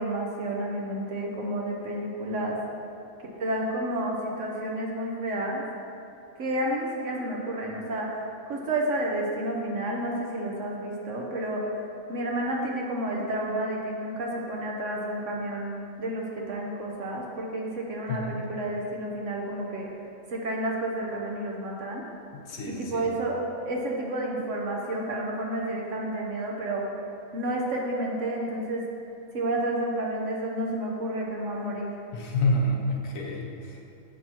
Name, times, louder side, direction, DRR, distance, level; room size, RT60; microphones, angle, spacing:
voice 1, 0.0-2.6 3.4-5.6 6.4-11.8 12.1-19.9 20.3-22.1 22.7-23.4 23.7-26.8 27.3-28.8 29.3-31.9, right 1 dB, 60° right, -1 dB, 1.1 m, -30 dB
voice 2, 22.3-23.1 32.1-33.8, left 1 dB, 65° left, -1 dB, 1.1 m, -28 dB
7.5 x 6.2 x 2.9 m, 2.7 s
omnidirectional pair, 1.6 m